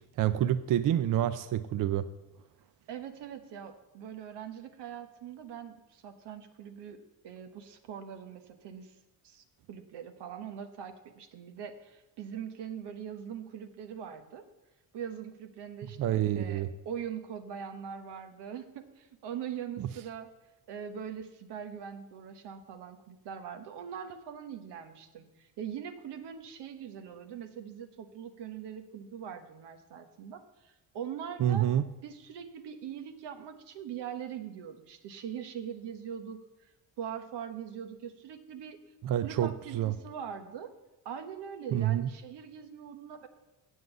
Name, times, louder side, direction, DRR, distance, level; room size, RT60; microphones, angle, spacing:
voice 1, 0.2-2.1 16.0-16.7 19.8-19.9 31.4-31.8 39.0-39.9 41.7-42.1, right 11 dB, 55° right, 12 dB, 0.5 m, -28 dB
voice 2, 2.9-9.0 9.2-14.4 14.9-20.3 20.7-31.7 32.0-36.7 37.0-38.8 39.2-40.7 41.0-43.3, right 8 dB, 85° right, 8 dB, 1.2 m, -42 dB
7.8 x 7.5 x 8.0 m, 1.0 s
cardioid pair, 110°, 40 cm